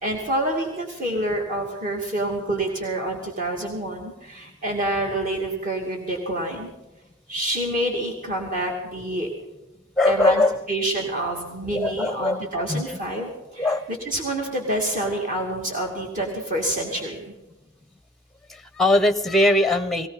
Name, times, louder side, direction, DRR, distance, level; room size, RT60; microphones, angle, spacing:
voice 1, 0.0-6.7 7.3-9.3 10.0-10.4 10.7-13.7 14.1-17.2, right 1 dB, 40° right, 0 dB, 2.4 m, -27 dB
voice 2, 10.0-10.6 11.7-12.4 12.7-13.0 13.6-13.9 16.6-16.7 18.5-20.1, left 1 dB, ahead, 10 dB, 0.8 m, -21 dB
18.5 x 18.0 x 4.1 m, 1.0 s
head